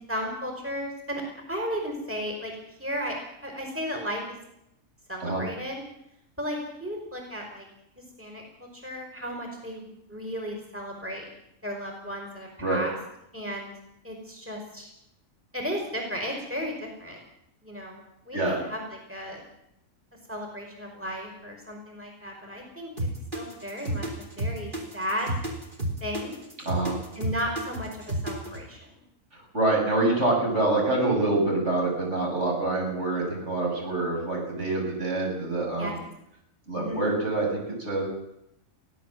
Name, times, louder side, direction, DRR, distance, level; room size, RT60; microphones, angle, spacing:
voice 1, 0.1-1.2 1.5-2.5 2.8-3.2 3.4-4.2 5.1-5.8 6.4-7.7 8.2-11.3 11.6-12.9 13.3-13.7 14.0-14.9 15.5-17.2 17.6-19.4 20.3-22.9 23.3-25.3 26.0-26.4 27.1-28.8 35.8-35.9 36.7-37.1, equal, 10° right, 1 dB, 5.0 m, -34 dB
sound 1, 23.0-28.6, right 1 dB, 35° right, 4.0 m, -31 dB
voice 2, 26.6-27.0 29.3-36.0 36.7-38.1, right 2 dB, 60° right, -1 dB, 6.9 m, -26 dB
23.0 x 16.5 x 7.5 m, 0.81 s
omnidirectional pair, 1.4 m